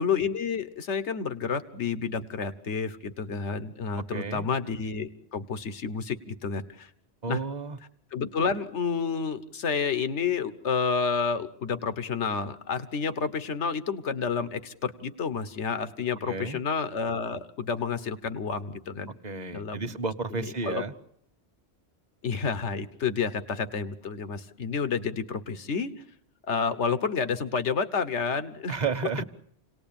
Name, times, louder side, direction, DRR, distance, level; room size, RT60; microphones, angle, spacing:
voice 1, 0.0-6.9 7.3-7.4 8.1-19.1 19.5-19.9 20.4-20.8 22.2-25.9 26.5-28.7, left 5 dB, 85° left, 12 dB, 1.5 m, -30 dB
voice 2, 4.1-4.5 7.2-7.8 16.3-16.6 19.2-20.9 28.7-29.2, right 4 dB, 40° right, 10 dB, 1.2 m, -32 dB
28.5 x 19.0 x 8.8 m, 0.72 s
omnidirectional pair, 1.1 m